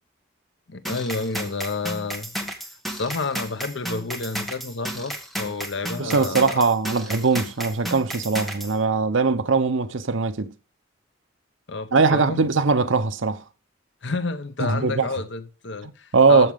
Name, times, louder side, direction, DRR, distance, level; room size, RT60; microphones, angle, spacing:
voice 1, 0.7-2.3 2.9-6.6 11.7-12.4 14.0-16.5, left 3 dB, 65° left, 0.9 m, -30 dB
sound 1, 0.8-8.7, right 1 dB, ahead, 1.4 m, -33 dB
voice 2, 6.0-10.5 11.9-13.4 14.6-15.1 16.1-16.5, right 4 dB, 75° right, 0.8 m, -20 dB
12.0 x 7.3 x 3.6 m
head